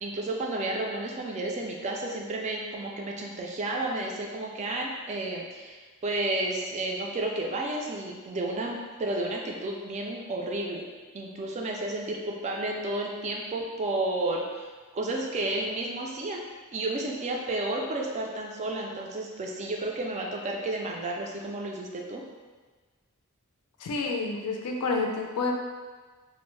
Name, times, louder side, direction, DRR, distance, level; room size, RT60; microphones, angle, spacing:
voice 1, 0.0-10.9 11.1-16.4 16.7-22.2, right 2 dB, 30° right, 0 dB, 0.3 m, -32 dB
voice 2, 23.8-25.5, left 3 dB, 90° left, 1 dB, 0.4 m, -29 dB
2.5 x 2.0 x 3.1 m, 1.4 s
head